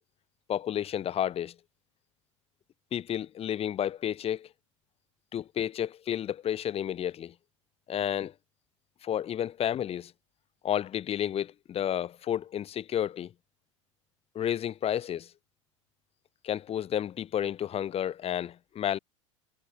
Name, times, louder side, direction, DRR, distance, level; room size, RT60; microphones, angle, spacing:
voice 1, 0.5-1.5 2.9-4.5 5.3-7.3 7.9-8.3 9.0-10.1 10.6-13.3 14.3-15.3 16.4-19.0, left 10 dB, 35° left, 4.1 m, -31 dB
hypercardioid pair, 80°, 16 cm